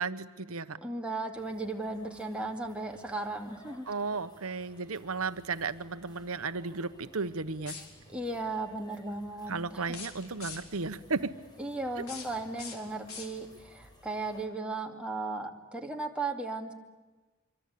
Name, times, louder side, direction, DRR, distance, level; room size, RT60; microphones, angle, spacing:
voice 1, 0.0-0.8 3.9-7.7 9.5-11.4, right 4 dB, 80° right, 12 dB, 1.1 m, -34 dB
voice 2, 0.8-3.9 8.1-10.0 11.6-16.7, right 2 dB, 5° right, 1 dB, 2.4 m, -36 dB
sound 1, 1.3-14.5, equal, 20° left, 4.7 m, -57 dB
sound 2, 7.6-8.2 9.8-10.9 11.8-13.7, left 5 dB, 85° left, 4.2 m, -45 dB
26.0 x 24.5 x 8.5 m, 1.2 s
head